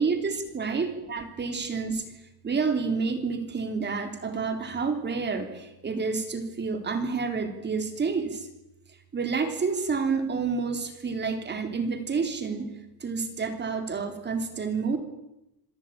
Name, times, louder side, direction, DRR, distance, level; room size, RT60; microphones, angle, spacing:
voice 1, 0.0-2.1 2.4-8.5 9.1-12.7 13.0-15.0, right 4 dB, 25° right, 7 dB, 3.4 m, -29 dB
26.5 x 17.5 x 8.8 m, 0.88 s
cardioid pair, 155°, 42 cm